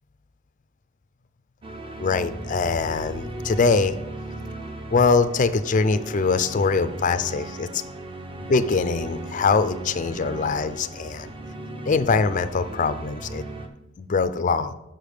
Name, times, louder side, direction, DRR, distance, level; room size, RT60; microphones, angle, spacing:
sound 1, 1.6-13.7, right 2 dB, 25° right, 0.7 m, -37 dB
voice 1, 2.0-3.9 4.9-7.8 8.5-11.4 11.9-13.4 14.0-14.7, left 4 dB, 40° left, 10 dB, 0.4 m, -23 dB
6.1 x 5.1 x 6.5 m, 0.89 s
head